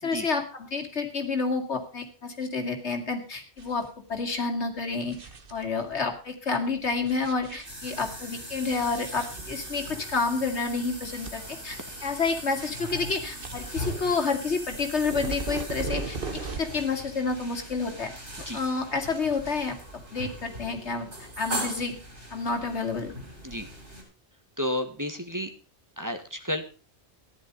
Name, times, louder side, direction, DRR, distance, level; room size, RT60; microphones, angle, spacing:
voice 1, 0.0-5.2 5.5-18.1 18.5-19.8 20.1-21.1 21.4-22.0 22.3-23.1, left 4 dB, 80° left, 4 dB, 2.6 m, -29 dB
sound 1, 3.6-3.9 4.2-4.3 4.8-6.0 6.8-8.1 8.8-9.9 10.3-10.4 10.8-11.8 12.2-16.9 17.2-18.1 18.4-20.1, right 4 dB, 55° right, 1.5 m, -39 dB
sound 2, 7.6-24.0, equal, 90° right, 8.0 m, -40 dB
voice 2, 24.6-25.5 26.0-26.6, left 1 dB, 15° right, 5 dB, 1.7 m, -31 dB
14.5 x 11.0 x 5.3 m, 0.34 s
omnidirectional pair, 1.1 m